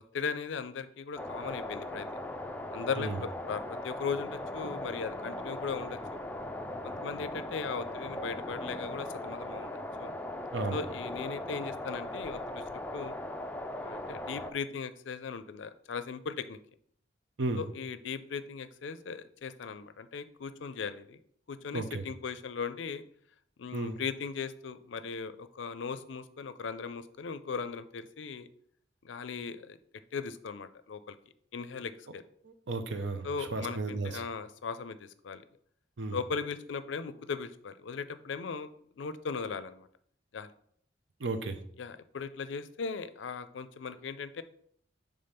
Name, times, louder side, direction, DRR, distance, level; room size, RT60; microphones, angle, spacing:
voice 1, 0.0-2.1 2.7-6.0 6.8-10.1 10.7-12.6 12.9-13.1 13.8-16.6 17.6-21.2 21.5-23.0 23.6-28.5 29.0-29.8 30.1-31.2 31.5-32.2 33.2-35.4 36.1-38.7 39.0-39.9 40.3-40.5 41.8-44.4, left 5 dB, 75° left, 13 dB, 0.4 m, -38 dB
sound 1, 1.2-14.5, left 1 dB, 10° left, 0.4 m, -39 dB
voice 2, 21.7-22.0 23.7-24.0 32.4-34.2 36.0-36.2 41.2-41.6, right 2 dB, 70° right, 8 dB, 0.7 m, -34 dB
5.2 x 3.6 x 5.6 m, 0.65 s
head